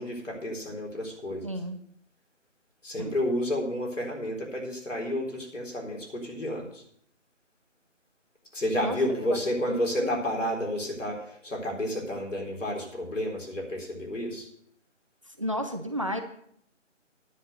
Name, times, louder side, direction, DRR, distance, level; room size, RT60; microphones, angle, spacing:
voice 1, 0.0-1.5 2.8-6.8 8.5-14.5, left 1 dB, 75° left, -1 dB, 3.9 m, -31 dB
voice 2, 1.4-1.8 3.0-3.1 8.8-9.4 9.7-10.2 15.3-16.2, equal, 25° right, 6 dB, 0.6 m, -33 dB
10.0 x 7.1 x 6.5 m, 0.66 s
figure-of-eight pair, 155°, 37 cm